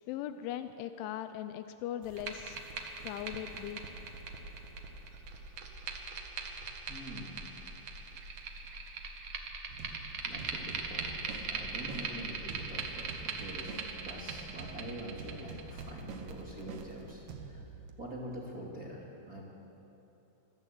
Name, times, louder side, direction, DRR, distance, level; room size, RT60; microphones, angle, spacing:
voice 1, 0.1-2.6 3.0-3.8, left 11 dB, 85° left, 10 dB, 3.1 m, -39 dB
sound 1, 2.0-17.3, right 5 dB, 55° right, 2.2 m, -41 dB
voice 2, 6.9-7.4 8.6-8.9 10.2-17.7 18.0-19.4, right 1 dB, 25° right, -3 dB, 2.3 m, -45 dB
sound 2, 9.7-17.9, right 4 dB, 75° right, 1.8 m, -47 dB
25.5 x 15.0 x 8.2 m, 3.0 s
omnidirectional pair, 5.4 m